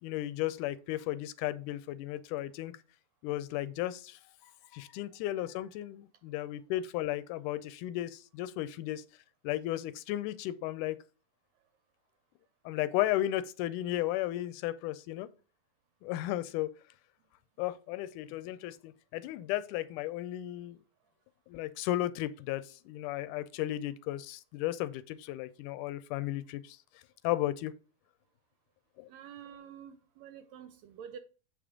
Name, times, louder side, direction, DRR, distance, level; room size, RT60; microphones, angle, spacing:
voice 1, 0.0-2.7 3.2-9.0 9.4-11.0 12.7-15.3 16.0-16.7 17.6-20.8 21.5-26.8 27.2-27.7 29.0-29.1, left 14 dB, 85° left, 2.1 m, -34 dB
voice 2, 29.0-31.2, right 8 dB, 80° right, 1.7 m, -48 dB
7.3 x 5.0 x 3.7 m
omnidirectional pair, 3.6 m